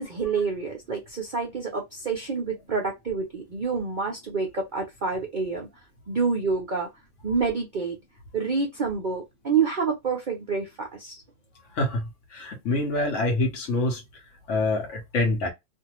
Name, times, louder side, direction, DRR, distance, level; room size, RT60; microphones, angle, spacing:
voice 1, 0.0-5.7 6.1-6.9 7.2-8.0 8.3-11.2, right 5 dB, 90° right, 0.4 m, -28 dB
voice 2, 12.3-14.0 14.5-15.5, left 2 dB, 55° left, 1.0 m, -25 dB
2.6 x 2.5 x 2.9 m
omnidirectional pair, 1.8 m